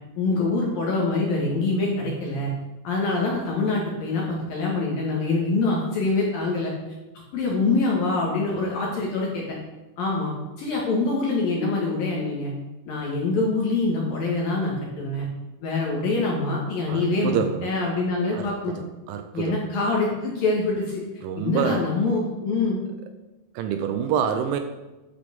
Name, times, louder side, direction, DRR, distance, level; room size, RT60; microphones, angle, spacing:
voice 1, 0.2-2.5 2.8-6.7 7.3-9.6 10.0-12.5 12.9-15.3 15.6-18.7 19.3-21.0 21.4-22.8, left 3 dB, 60° left, -2 dB, 2.7 m, -25 dB
voice 2, 16.9-17.7 18.3-18.7 19.1-19.6 21.2-21.9 23.5-24.6, right 8 dB, 80° right, 8 dB, 2.9 m, -27 dB
11.0 x 5.9 x 6.9 m, 1.1 s
omnidirectional pair, 5.9 m